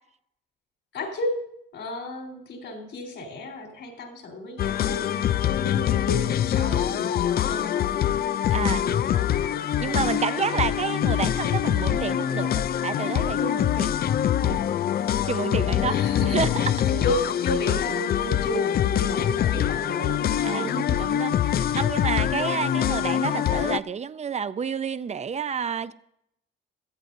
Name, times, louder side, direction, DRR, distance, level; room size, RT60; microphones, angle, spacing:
voice 1, 0.9-1.4 1.7-8.2 8.7-9.5 9.8-10.7 15.3-21.3, left 1 dB, 70° left, 3.9 m, -33 dB
sound 1, 4.6-23.8, left 10 dB, 50° left, 0.4 m, -24 dB
voice 2, 8.5-8.8 9.8-14.0 14.4-14.6 15.3-16.0 16.3-16.7 20.4-20.7 21.0-25.9, right 6 dB, 35° right, 0.6 m, -29 dB
17.0 x 13.5 x 2.7 m
cardioid pair, 90°, 20 cm